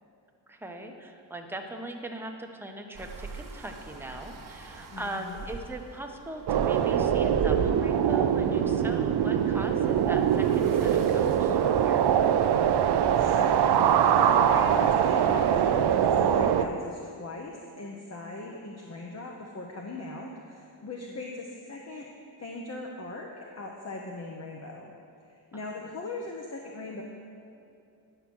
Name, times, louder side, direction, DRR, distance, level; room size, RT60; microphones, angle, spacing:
voice 1, 0.5-12.1 21.1-21.2 25.5-25.9, right 1 dB, 5° right, 2 dB, 0.9 m, -40 dB
sound 1, 2.9-12.5, right 4 dB, 45° right, 1.1 m, -41 dB
voice 2, 4.9-5.4 13.1-22.1 22.4-24.9 25.3-27.0, left 2 dB, 35° left, -1 dB, 0.9 m, -39 dB
sound 2, 6.5-16.6, right 9 dB, 60° right, 0.6 m, -23 dB
10.0 x 5.8 x 6.2 m, 2.5 s
cardioid pair, 90°, 45 cm